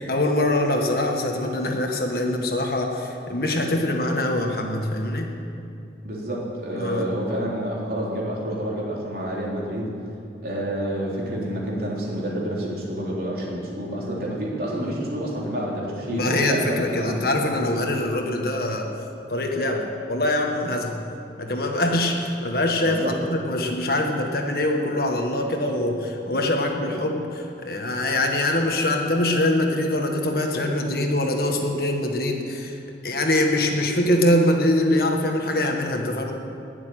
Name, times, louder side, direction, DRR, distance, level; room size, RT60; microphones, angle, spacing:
voice 1, 0.0-5.3 6.8-7.1 16.1-18.9 19.3-21.0 21.4-32.8 33.0-36.3, left 1 dB, 55° left, 2 dB, 1.7 m, -23 dB
voice 2, 6.0-9.9 10.4-17.2 22.8-23.1, right 1 dB, 55° right, -4 dB, 3.8 m, -28 dB
20.5 x 7.3 x 9.3 m, 2.5 s
head